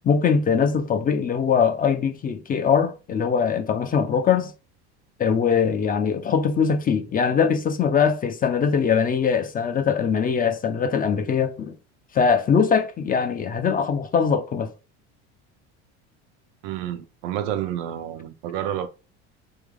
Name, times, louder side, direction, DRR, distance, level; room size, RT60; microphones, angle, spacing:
voice 1, 0.0-4.5 5.2-11.8 12.1-14.7, left 6 dB, 25° left, 0.5 m, -22 dB
voice 2, 16.6-18.9, right 11 dB, 70° right, 0.7 m, -29 dB
3.5 x 2.9 x 3.6 m
supercardioid pair, 95°, 34 cm